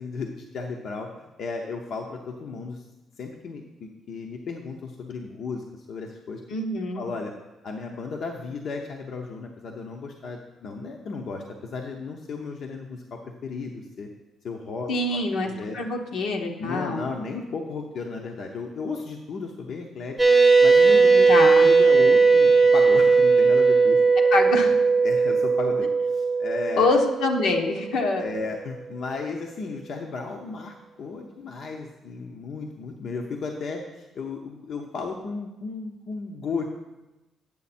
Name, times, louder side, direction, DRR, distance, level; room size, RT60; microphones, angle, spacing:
voice 1, 0.0-2.8 3.2-6.4 6.9-7.3 7.6-14.1 14.4-15.8 16.6-20.2 20.6-21.3 21.6-24.0 25.0-26.9 28.2-36.6, left 4 dB, 65° left, 1 dB, 0.8 m, -34 dB
voice 2, 6.5-7.0 14.9-17.0 21.3-21.7 24.3-24.7 26.8-28.3, left 3 dB, 80° left, 2 dB, 1.0 m, -25 dB
sound 1, 20.2-28.2, right 4 dB, 10° right, 1.0 m, -18 dB
8.5 x 6.5 x 4.3 m, 1.0 s
cardioid pair, 90°, 0 cm